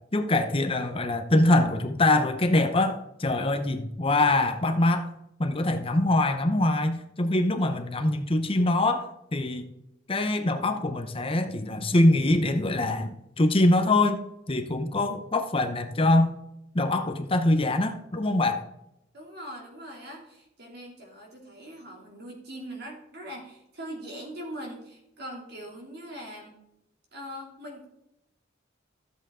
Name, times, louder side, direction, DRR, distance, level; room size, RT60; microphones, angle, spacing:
voice 1, 0.1-5.1 5.4-9.6 10.1-14.2 14.5-16.3 16.7-18.6, left 2 dB, 30° left, 7 dB, 0.8 m, -24 dB
voice 2, 19.1-26.6 27.1-27.8, equal, 55° right, -1 dB, 2.9 m, -41 dB
13.5 x 7.7 x 3.7 m, 0.84 s
head